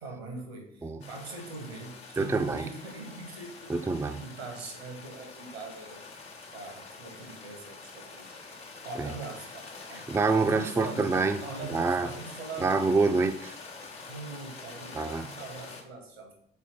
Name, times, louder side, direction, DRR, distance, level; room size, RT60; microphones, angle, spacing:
voice 1, 0.0-3.7 4.1-6.1 6.5-8.4 8.8-10.1 10.4-11.1 11.4-12.9 13.9-16.3, right 3 dB, 85° right, 1.6 m, -42 dB
sound 1, 1.0-15.8, left 4 dB, 90° left, 1.0 m, -46 dB
voice 2, 2.2-2.7 3.7-4.2 9.0-9.1 10.1-11.4 11.7-12.1 12.6-13.6 14.9-15.3, right 3 dB, 10° right, 0.4 m, -26 dB
4.4 x 4.2 x 5.5 m
figure-of-eight pair, 50°, 31 cm